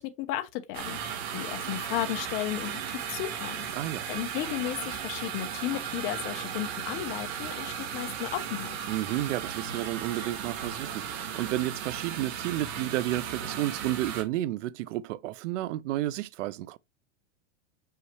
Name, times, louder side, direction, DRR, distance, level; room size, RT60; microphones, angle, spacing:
voice 1, 0.0-3.8 4.1-8.8, left 14 dB, 35° left, 0.9 m, -34 dB
sound 1, 0.7-14.2, right 8 dB, 55° right, 1.9 m, -36 dB
voice 2, 3.7-4.1 8.9-16.8, right 15 dB, 70° right, 0.5 m, -31 dB
6.4 x 5.7 x 3.1 m
supercardioid pair, 155°, 38 cm